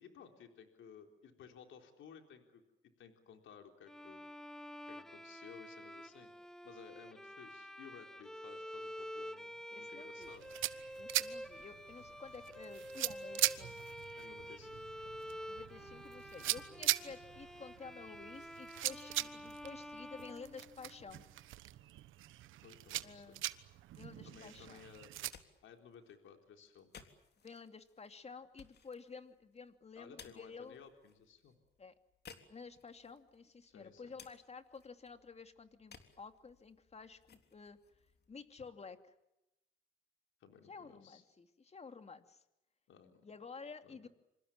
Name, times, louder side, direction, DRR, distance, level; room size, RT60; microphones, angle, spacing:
voice 1, 0.0-2.6 3.0-4.2 4.9-6.3 6.6-10.5 14.2-14.9 22.6-23.4 24.2-25.1 25.6-26.9 30.0-31.6 33.6-34.1 40.4-41.2 42.9-43.3 43.8-44.1, left 7 dB, 75° left, 4 dB, 3.9 m, -57 dB
Bowed string instrument, 3.9-21.1, equal, 5° left, 1.2 m, -49 dB
voice 2, 9.7-10.3 11.0-13.7 15.5-21.2 23.0-23.4 24.0-24.9 27.4-30.8 31.8-31.9 32.5-37.8 38.3-39.0 40.6-42.4 43.2-44.1, left 5 dB, 30° left, 8 dB, 2.6 m, -52 dB
sound 1, 10.2-25.3, right 14 dB, 85° right, 1.2 m, -41 dB
sound 2, 25.1-39.0, left 6 dB, 55° left, 3.6 m, -62 dB
27.0 x 26.0 x 7.4 m, 0.90 s
cardioid pair, 90°, 20 cm